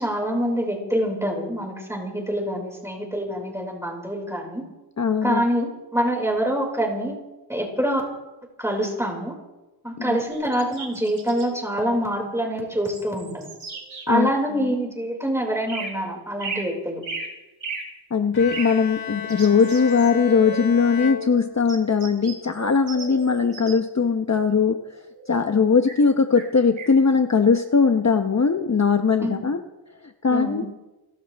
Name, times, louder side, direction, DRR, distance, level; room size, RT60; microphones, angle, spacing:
voice 1, 0.0-4.6 5.2-7.1 7.5-8.0 8.6-9.3 9.8-13.5 14.1-17.0 29.2-29.4 30.3-30.6, equal, 5° right, -1 dB, 5.4 m, -25 dB
voice 2, 5.0-5.4 10.0-10.2 14.1-14.3 18.1-24.8 25.3-29.6 30.2-30.6, left 5 dB, 35° left, 6 dB, 1.0 m, -20 dB
sound 1, 10.3-11.5 12.8-14.1 15.7-16.0 16.4-17.9 18.5-18.8 19.3-20.7 21.7-23.8 24.3-26.0 26.3-27.0, right 4 dB, 75° right, 3.7 m, -36 dB
Bowed string instrument, 18.3-22.1, left 7 dB, 80° left, 2.6 m, -34 dB
30.0 x 13.0 x 3.5 m, 1.1 s
wide cardioid pair, 90°, 47 cm